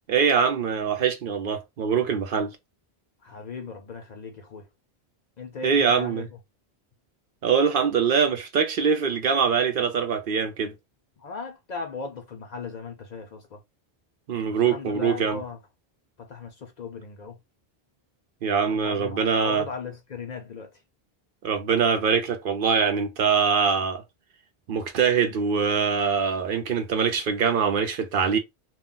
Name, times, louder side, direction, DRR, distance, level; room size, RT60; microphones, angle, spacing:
voice 1, 0.1-2.5 5.6-6.3 7.4-10.7 14.3-15.4 18.4-19.6 21.4-24.0 24.7-28.4, right 6 dB, 65° right, 0.7 m, -23 dB
voice 2, 3.2-4.7 5.4-6.3 11.2-13.6 14.6-15.6 16.2-17.4 18.7-20.7, left 5 dB, 55° left, 0.5 m, -37 dB
2.2 x 2.2 x 3.6 m
omnidirectional pair, 1.1 m